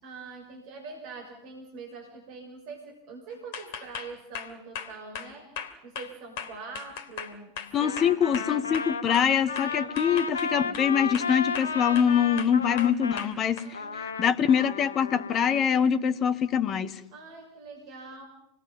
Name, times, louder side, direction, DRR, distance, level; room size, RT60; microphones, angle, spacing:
voice 1, 0.0-5.5 5.8-7.5 7.8-8.5 9.7-10.0 13.6-14.4 17.1-18.2, right 4 dB, 45° right, 3 dB, 6.2 m, -44 dB
sound 1, 3.5-9.3 9.6-10.9 11.1-12.1 12.4-13.7, left 7 dB, 50° left, 2.5 m, -38 dB
Trumpet, 7.7-13.2 13.7-15.7, left 5 dB, 70° left, 1.0 m, -34 dB
voice 2, 7.7-13.8 14.2-17.0, left 8 dB, 30° left, 13 dB, 1.4 m, -24 dB
28.0 x 20.0 x 7.3 m, 0.81 s
figure-of-eight pair, 90°, 0 cm